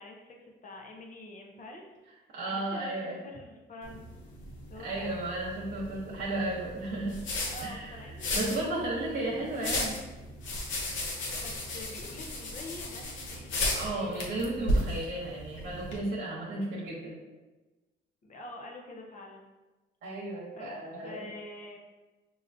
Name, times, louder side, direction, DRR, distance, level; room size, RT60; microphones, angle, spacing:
voice 1, 0.0-1.9 2.5-4.0 4.7-5.2 7.5-9.5 11.1-14.4 18.2-19.5 20.5-20.7 21.0-21.8, left 2 dB, 40° left, 1 dB, 0.7 m, -46 dB
voice 2, 2.3-3.2 4.8-7.2 7.6-7.9 8.3-10.0 13.7-17.2 20.0-21.2, right 2 dB, 80° right, -6 dB, 1.0 m, -34 dB
sound 1, 3.8-16.0, left 1 dB, 75° left, 0.9 m, -35 dB
5.2 x 2.8 x 2.6 m, 1.2 s
cardioid pair, 90°, 20 cm